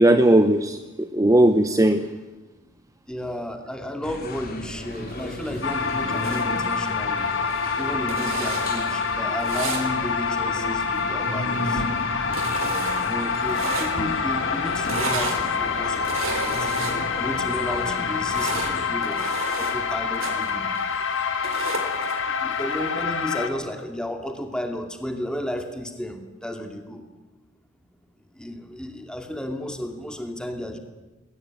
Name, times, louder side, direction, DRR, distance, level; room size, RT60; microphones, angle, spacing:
voice 1, 0.0-2.0, right 1 dB, 15° right, 9 dB, 0.8 m, -18 dB
voice 2, 3.1-7.3 7.8-11.9 13.0-16.7 17.2-20.7 22.2-27.0 28.3-30.8, left 1 dB, 5° left, 5 dB, 2.5 m, -33 dB
sound 1, 4.0-18.9, left 1 dB, 45° left, 3.1 m, -34 dB
sound 2, 4.9-22.9, right 4 dB, 70° right, 4.0 m, -36 dB
sound 3, 5.6-23.5, left 5 dB, 65° left, 2.1 m, -26 dB
20.5 x 18.5 x 9.3 m, 1.1 s
head